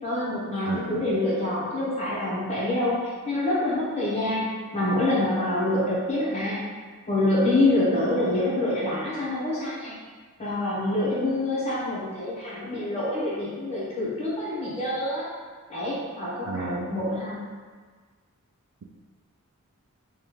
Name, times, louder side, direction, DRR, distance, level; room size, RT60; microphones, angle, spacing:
voice 1, 0.0-4.5 4.7-6.6 7.1-10.0 10.4-15.3 15.7-17.4, left 1 dB, 30° left, -9 dB, 1.2 m, -26 dB
voice 2, 0.6-1.1 16.5-17.0, right 3 dB, 85° right, 4 dB, 0.4 m, -34 dB
3.4 x 2.7 x 3.1 m, 1.5 s
head